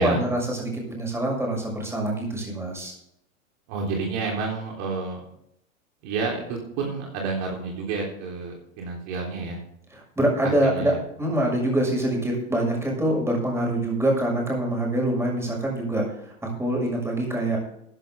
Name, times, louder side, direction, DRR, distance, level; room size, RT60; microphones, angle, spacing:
voice 1, 0.0-2.9 9.9-17.6, right 1 dB, 5° right, -1 dB, 6.2 m, -25 dB
voice 2, 3.7-5.2 6.0-9.6 10.4-11.0, right 3 dB, 50° right, -1 dB, 3.8 m, -29 dB
14.5 x 11.0 x 3.7 m, 0.75 s
hypercardioid pair, 105°, 41 cm